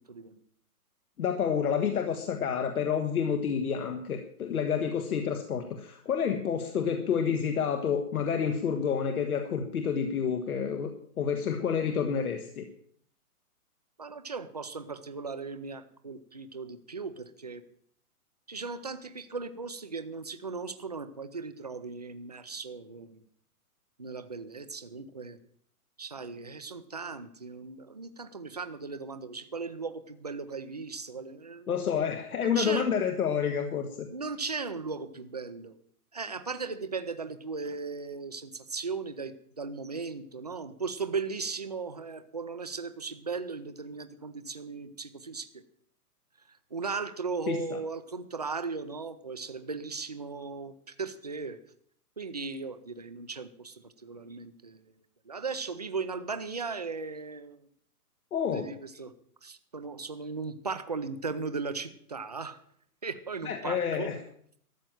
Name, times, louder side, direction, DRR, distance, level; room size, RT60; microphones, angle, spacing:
voice 1, 0.1-0.4 14.0-17.6 18.5-23.2 24.0-25.4 26.0-31.7 32.4-32.9 34.1-35.7 36.1-45.6 46.5-51.6 52.2-54.8 55.3-57.7 58.5-59.1 59.4-62.6 63.0-64.1, right 4 dB, 30° right, 10 dB, 0.5 m, -37 dB
voice 2, 1.2-12.6 31.7-34.1 47.5-47.8 58.3-58.7 63.4-64.2, left 7 dB, 70° left, 5 dB, 1.7 m, -29 dB
13.5 x 7.5 x 9.1 m, 0.64 s
hypercardioid pair, 175°, 46 cm